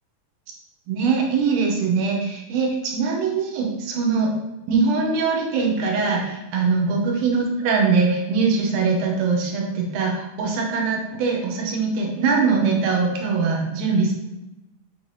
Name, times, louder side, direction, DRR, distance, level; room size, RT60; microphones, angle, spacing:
voice 1, 0.9-4.3 4.7-14.1, right 4 dB, 80° right, 1 dB, 2.1 m, -22 dB
5.6 x 3.2 x 2.6 m, 1.0 s
omnidirectional pair, 3.7 m